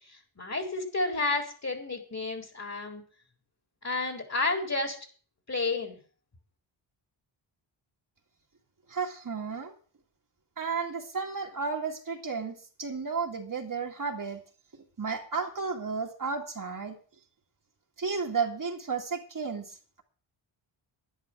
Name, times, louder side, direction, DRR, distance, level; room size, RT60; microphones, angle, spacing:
voice 1, 0.1-3.0 3.8-5.0 5.5-6.0, left 3 dB, 30° left, 4 dB, 3.9 m, -31 dB
voice 2, 8.9-9.7 10.6-14.4 15.0-17.0 18.0-20.0, right 5 dB, 40° right, 2 dB, 2.2 m, -33 dB
11.0 x 10.5 x 6.1 m, 0.40 s
cardioid pair, 95°, 50 cm